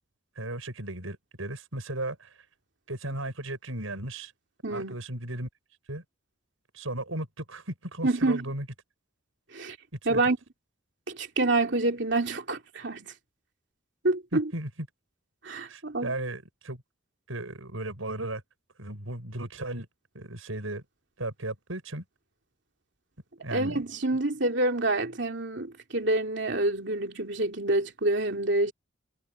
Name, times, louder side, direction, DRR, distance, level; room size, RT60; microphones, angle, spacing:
voice 1, 0.4-2.5 2.9-4.3 4.7-5.5 5.9-6.0 6.7-8.7 10.1-10.2 14.3-14.7 15.6-16.8 17.3-18.4 18.8-19.9 20.2-20.8 21.2-22.0 23.4-23.8, right 1 dB, 85° right, 6.8 m, -35 dB
voice 2, 4.6-5.0 8.0-8.4 9.5-9.8 10.0-10.4 11.1-13.1 14.0-14.5 15.4-16.1 23.5-28.7, right 2 dB, 60° right, 2.9 m, -27 dB
head